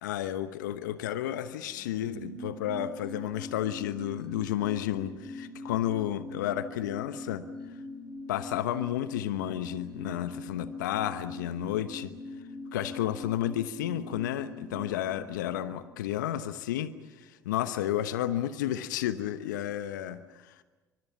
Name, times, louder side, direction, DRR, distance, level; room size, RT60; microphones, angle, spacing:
voice 1, 0.0-7.5 8.3-12.1 12.7-20.5, left 12 dB, 80° left, 12 dB, 1.1 m, -32 dB
sound 1, 1.6-16.6 16.9-17.0, left 2 dB, 45° right, 4.0 m, -43 dB
27.5 x 24.5 x 7.1 m, 1.2 s
hypercardioid pair, 60°, 10 cm